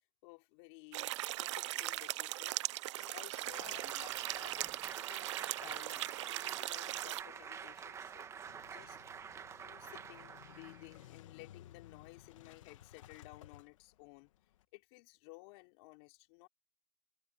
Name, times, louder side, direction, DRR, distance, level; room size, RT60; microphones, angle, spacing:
voice 1, 0.2-9.0 9.6-14.3 14.7-16.5, left 28 dB, 50° left, 4.2 m, -56 dB
sound 1, 0.9-7.2, right 17 dB, 65° right, 0.4 m, -39 dB
Applause, 3.3-11.0, right 7 dB, 15° right, 1.4 m, -48 dB
Motorcycle / Engine starting, 7.4-14.6, left 12 dB, 75° left, 1.3 m, -58 dB
supercardioid pair, 145°, 16 cm